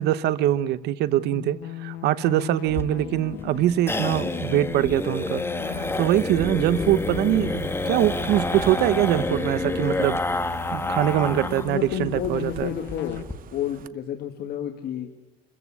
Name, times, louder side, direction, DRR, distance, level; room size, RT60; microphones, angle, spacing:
voice 1, 0.0-10.2 10.7-12.7, right 13 dB, 80° right, 1.0 m, -23 dB
sound 1, 1.2-13.2, left 14 dB, 80° left, 0.9 m, -38 dB
sound 2, 2.7-11.8 12.1-12.2 12.5-12.6 12.9-13.3, left 2 dB, 15° left, 1.6 m, -29 dB
sound 3, 5.7-13.9, right 11 dB, 55° right, 0.9 m, -40 dB
voice 2, 11.7-13.2 13.5-15.1, left 10 dB, 65° left, 1.7 m, -30 dB
26.5 x 14.5 x 8.3 m
cardioid pair, 110°, 17 cm